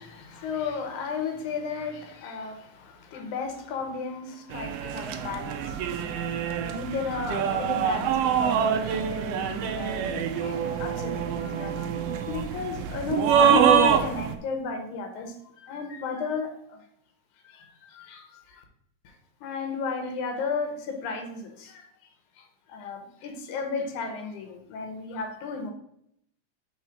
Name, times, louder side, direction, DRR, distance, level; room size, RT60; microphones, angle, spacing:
voice 1, 0.0-6.3 6.6-11.9 12.3-16.8 17.4-18.6 19.0-19.2 19.4-21.9 22.4-25.7, left 5 dB, 85° left, 5 dB, 2.4 m, -34 dB
sound 1, 4.5-14.3, right 7 dB, 90° right, 1.3 m, -25 dB
4.8 x 4.4 x 5.7 m, 0.72 s
omnidirectional pair, 3.4 m